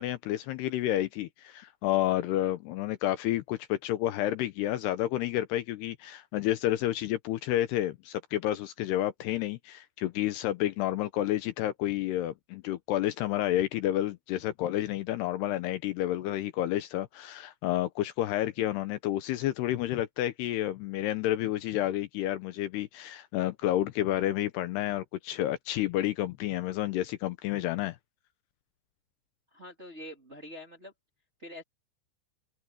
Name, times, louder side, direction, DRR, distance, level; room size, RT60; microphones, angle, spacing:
voice 1, 0.0-28.0, left 13 dB, 80° left, 2.6 m, -30 dB
voice 2, 29.5-30.9 31.4-31.6, left 1 dB, 20° right, 2.0 m, -45 dB
omnidirectional pair, 5.2 m